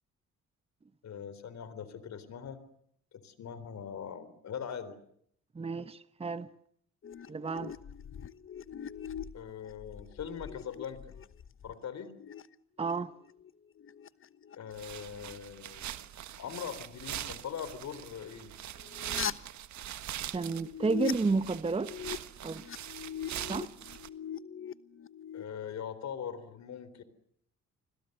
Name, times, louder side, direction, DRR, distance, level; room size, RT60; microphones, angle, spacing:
voice 1, 1.0-2.6 3.1-5.0 9.3-11.2 11.6-12.1 14.5-15.8 16.4-18.5 25.3-27.0, left 7 dB, 65° left, 3.9 m, -41 dB
voice 2, 5.5-6.5 7.3-7.7 12.8-13.1 20.3-21.9 22.4-22.6 23.5-23.7, right 4 dB, 20° right, 1.0 m, -31 dB
sound 1, 7.0-11.7 12.2-12.9 13.2-15.4 18.8-19.3 20.4-21.1 21.6-22.2 22.4-25.4, left 8 dB, 45° left, 1.1 m, -42 dB
sound 2, 14.7-24.1, right 11 dB, 70° right, 1.4 m, -42 dB
29.5 x 21.5 x 6.8 m
cardioid pair, 90°, 30 cm